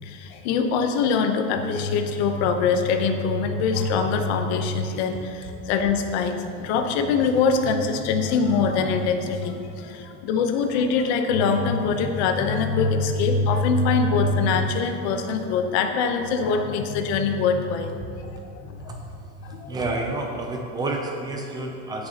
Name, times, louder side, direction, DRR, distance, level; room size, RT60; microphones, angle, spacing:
voice 1, 0.0-18.9 19.4-19.8, left 5 dB, 60° left, 5 dB, 0.9 m, -23 dB
voice 2, 19.7-22.1, right 2 dB, 10° right, 1 dB, 0.4 m, -29 dB
17.0 x 6.7 x 2.9 m, 2.7 s
supercardioid pair, 170°, 37 cm